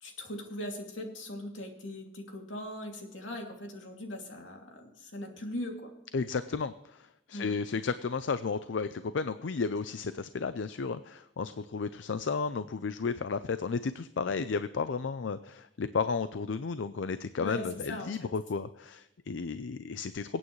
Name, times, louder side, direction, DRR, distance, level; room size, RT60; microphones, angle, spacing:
voice 1, 0.0-5.9 7.3-7.6 17.4-18.3, left 1 dB, 90° left, 2 dB, 2.6 m, -40 dB
voice 2, 6.1-20.4, left 5 dB, 75° left, 12 dB, 0.5 m, -33 dB
23.5 x 8.9 x 3.2 m, 0.92 s
head